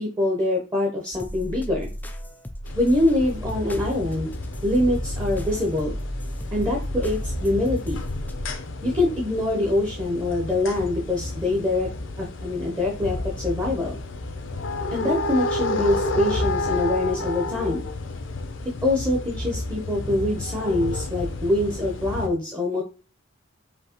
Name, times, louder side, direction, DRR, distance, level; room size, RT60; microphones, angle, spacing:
voice 1, 0.0-1.9 2.8-4.3 4.6-5.9 6.5-8.0 8.8-11.9 12.2-14.0 14.9-17.9 18.8-22.8, left 2 dB, 20° right, -1 dB, 0.8 m, -24 dB
sound 1, 1.1-8.5, equal, 10° left, 0.3 m, -34 dB
sound 2, 2.6-22.3, left 2 dB, 60° left, 0.6 m, -31 dB
5.1 x 2.8 x 2.9 m, 0.36 s
head